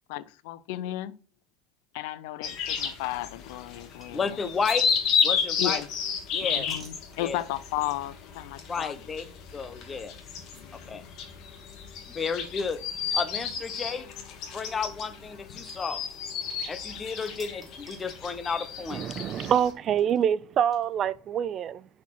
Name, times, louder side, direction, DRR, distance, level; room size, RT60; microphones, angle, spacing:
voice 1, 0.1-1.1 1.9-4.4 5.6-5.9 6.4-9.0 10.5-11.0, left 14 dB, 75° left, 0.4 m, -34 dB
sound 1, 2.4-19.7, left 6 dB, 55° left, 1.5 m, -32 dB
sound 2, 4.0-4.3 4.7-7.7 8.4-8.5 8.8-8.9 9.9-10.0 10.5-10.6 10.9-11.0 11.2-11.3 11.7-13.3 14.2-14.3 15.7-16.7 17.0-18.2 18.9-21.2, right 2 dB, 20° right, 2.6 m, -52 dB
voice 2, 4.1-4.9 5.2-5.8 6.3-6.7 7.2-7.4 8.7-9.2 9.5-10.1 10.7-11.0 12.1-12.8 13.1-14.1 14.5-16.1 16.7-19.0, left 5 dB, 25° left, 0.8 m, -32 dB
voice 3, 18.9-21.9, right 9 dB, 45° right, 0.4 m, -26 dB
5.9 x 4.3 x 5.6 m
supercardioid pair, 100°, 0 cm